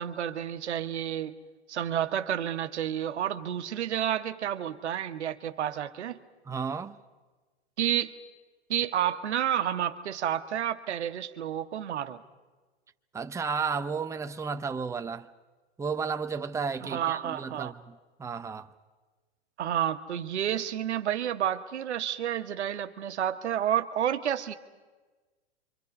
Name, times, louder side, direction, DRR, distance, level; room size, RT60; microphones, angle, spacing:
voice 1, 0.0-1.3 1.7-6.2 7.8-8.1 8.7-12.2 16.8-17.7 19.6-24.5, right 10 dB, 80° right, 1.4 m, -30 dB
voice 2, 6.5-7.0 13.1-15.3 15.8-18.7, right 5 dB, 10° right, 0.7 m, -33 dB
29.0 x 24.5 x 5.4 m
hypercardioid pair, 115°, 34 cm